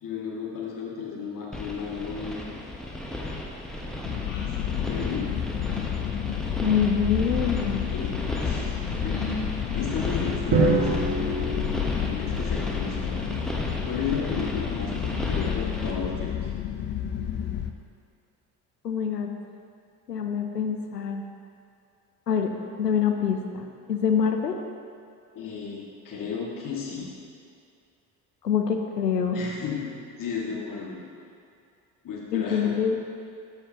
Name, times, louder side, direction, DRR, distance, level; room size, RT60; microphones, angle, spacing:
voice 1, 0.0-2.6 4.2-5.4 7.9-11.6 12.1-13.2 13.8-16.5 25.3-27.2 29.3-31.0 32.0-32.9, left 6 dB, 40° left, -3 dB, 1.9 m, -34 dB
sound 1, 1.5-15.9, left 1 dB, ahead, 1.0 m, -34 dB
sound 2, 4.0-17.7, left 10 dB, 25° left, 0.3 m, -31 dB
voice 2, 6.6-7.9 18.8-19.3 20.1-21.2 22.3-22.5 22.8-24.6 28.4-29.4 32.3-33.0, left 7 dB, 90° left, 4 dB, 0.6 m, -25 dB
Drum, 10.5-12.7, right 3 dB, 40° right, 1.9 m, -25 dB
13.0 x 5.6 x 2.8 m, 2.5 s
figure-of-eight pair, 55°, 48 cm